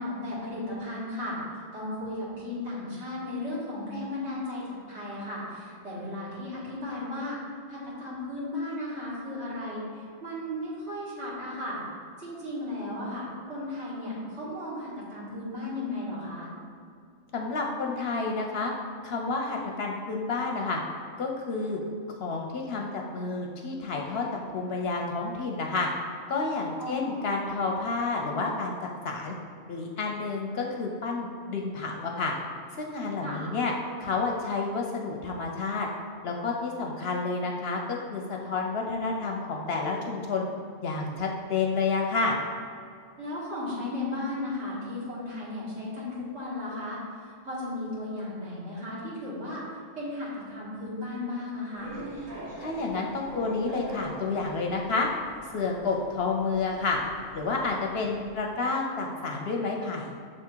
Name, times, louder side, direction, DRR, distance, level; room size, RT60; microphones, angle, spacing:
voice 1, 0.0-7.4 7.7-11.8 12.2-16.5 26.8-27.3 33.2-33.4 43.2-52.0, left 1 dB, 60° right, -7 dB, 2.0 m, -35 dB
voice 2, 17.3-18.7 19.0-20.8 21.2-21.8 22.2-25.9 26.3-29.3 29.7-32.3 32.7-33.7 34.0-35.9 36.2-40.5 40.8-42.4 52.6-55.1 55.5-57.0 57.3-60.1, left 4 dB, 60° left, 1 dB, 0.7 m, -30 dB
sound 1, 51.8-58.3, right 1 dB, 85° right, 1.6 m, -43 dB
6.6 x 3.6 x 4.4 m, 2.3 s
omnidirectional pair, 1.3 m